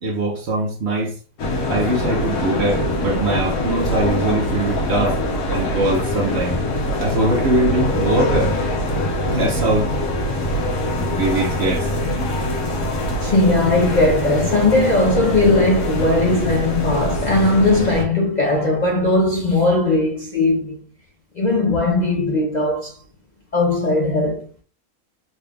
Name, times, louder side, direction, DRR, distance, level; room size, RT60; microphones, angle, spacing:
voice 1, 0.0-1.2 1.7-5.2 5.5-6.6 7.0-8.5 9.3-9.9 11.1-11.9, right 2 dB, 55° right, 0.9 m, -22 dB
sound 1, 1.4-18.0, left 1 dB, 85° left, 1.5 m, -23 dB
voice 2, 13.2-20.8 21.4-22.9 23.5-24.5, left 2 dB, 45° left, 0.6 m, -18 dB
3.9 x 2.4 x 3.4 m
omnidirectional pair, 1.5 m